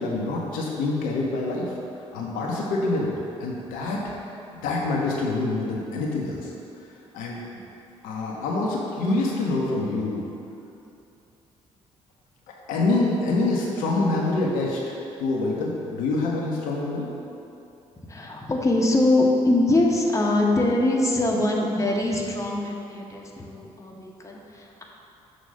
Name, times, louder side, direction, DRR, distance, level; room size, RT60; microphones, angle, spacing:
voice 1, 0.0-1.7 2.1-3.1 3.4-4.1 4.5-6.5 7.1-7.4 8.0-10.2 12.7-14.9 15.2-17.1, left 2 dB, 70° left, -3 dB, 0.8 m, -26 dB
voice 2, 18.0-24.8, left 2 dB, 20° left, -1 dB, 1.0 m, -23 dB
6.3 x 3.0 x 5.3 m, 2.7 s
hypercardioid pair, 45°, 15 cm